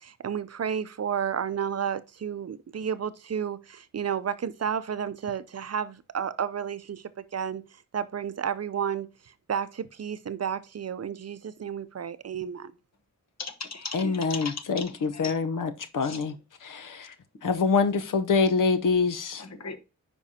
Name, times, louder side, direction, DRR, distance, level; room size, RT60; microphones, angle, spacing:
voice 1, 0.0-7.6 7.9-9.1 9.5-12.7, right 8 dB, 50° right, 0.5 m, -31 dB
voice 2, 13.4-14.6 15.2-15.3 16.0-16.2 19.4-19.8, left 4 dB, 55° left, 1.2 m, -37 dB
voice 3, 13.9-16.4 16.6-17.1 17.4-19.4, left 4 dB, 80° left, 0.8 m, -25 dB
9.8 x 5.2 x 2.8 m
wide cardioid pair, 100°, 32 cm